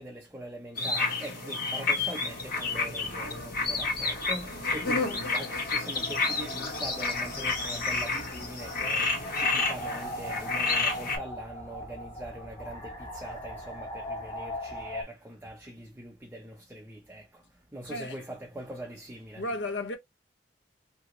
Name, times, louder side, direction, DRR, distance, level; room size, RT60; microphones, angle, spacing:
voice 1, 0.0-17.4 17.7-19.4, right 1 dB, 10° right, 0.6 m, -42 dB
sound 1, 0.8-11.2, left 3 dB, 55° left, 1.6 m, -30 dB
sound 2, 2.2-15.0, equal, 25° left, 1.3 m, -41 dB
voice 2, 19.3-20.0, left 2 dB, 70° left, 0.8 m, -33 dB
2.9 x 2.6 x 3.1 m
head